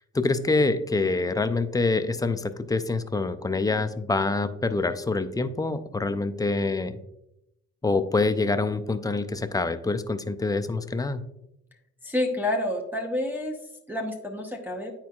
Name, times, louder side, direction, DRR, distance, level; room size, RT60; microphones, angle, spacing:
voice 1, 0.1-7.0 7.8-11.2, left 3 dB, 10° left, 10 dB, 0.4 m, -26 dB
voice 2, 12.0-13.6 13.9-14.9, left 1 dB, 5° right, -2 dB, 0.8 m, -28 dB
9.4 x 4.4 x 2.3 m, 0.83 s
cardioid pair, 90°, 30 cm